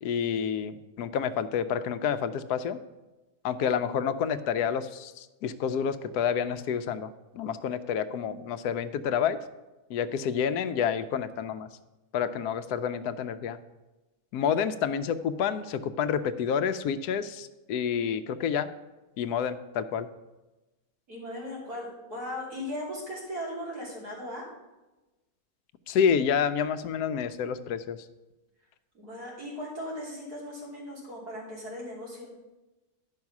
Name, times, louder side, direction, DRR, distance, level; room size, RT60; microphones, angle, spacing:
voice 1, 0.0-2.8 3.4-9.4 9.9-11.7 12.1-13.6 14.3-18.7 19.2-20.1 25.9-28.0, left 7 dB, 85° left, 11 dB, 1.1 m, -29 dB
voice 2, 21.1-24.4 28.9-32.3, left 1 dB, 80° right, -5 dB, 3.4 m, -38 dB
10.5 x 5.6 x 5.9 m, 1.1 s
omnidirectional pair, 1.6 m